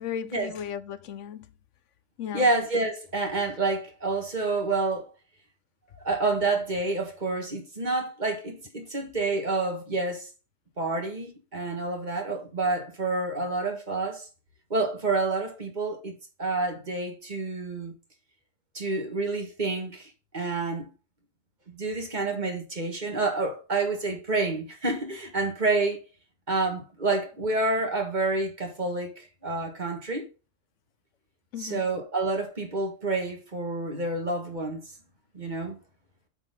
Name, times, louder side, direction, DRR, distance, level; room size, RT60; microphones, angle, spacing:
voice 1, 0.0-1.5 2.2-2.5 31.5-31.9, left 8 dB, 75° left, 1.0 m, -35 dB
voice 2, 2.3-5.1 6.0-10.3 10.8-14.3 14.7-17.9 18.7-20.9 21.7-26.0 26.5-30.3 31.6-34.8 35.3-35.8, right 3 dB, 40° right, 1.7 m, -28 dB
8.0 x 4.3 x 5.4 m
omnidirectional pair, 1.3 m